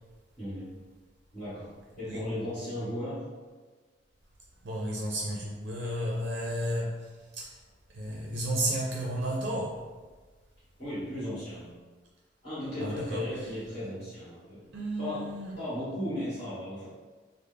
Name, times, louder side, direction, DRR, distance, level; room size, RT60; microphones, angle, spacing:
voice 1, 0.4-0.8 1.3-3.3 10.8-11.8 12.4-14.6 15.0-15.3 15.6-16.9, left 1 dB, 35° left, -12 dB, 1.4 m, -36 dB
voice 2, 4.6-7.6 7.9-9.8 12.8-13.5 14.7-15.6, right 1 dB, 70° right, -3 dB, 0.5 m, -33 dB
3.3 x 2.0 x 3.4 m, 1.4 s
head